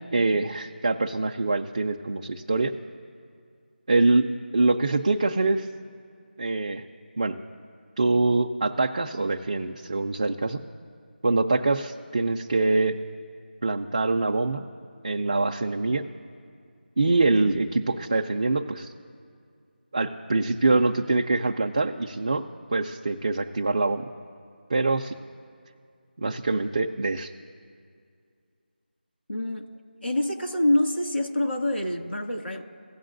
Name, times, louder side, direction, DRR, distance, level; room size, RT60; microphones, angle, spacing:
voice 1, 0.1-2.7 3.9-5.7 6.4-6.8 7.2-7.4 8.0-10.6 11.2-13.0 13.6-14.7 15.0-16.0 17.0-18.9 19.9-22.4 22.7-24.0 24.7-25.2 26.2-27.3, right 3 dB, 30° right, 2 dB, 0.4 m, -24 dB
voice 2, 29.3-29.7 30.0-32.6, left 1 dB, 90° left, 2 dB, 2.0 m, -26 dB
17.5 x 7.3 x 2.6 m, 2.2 s
figure-of-eight pair, 170°, 6 cm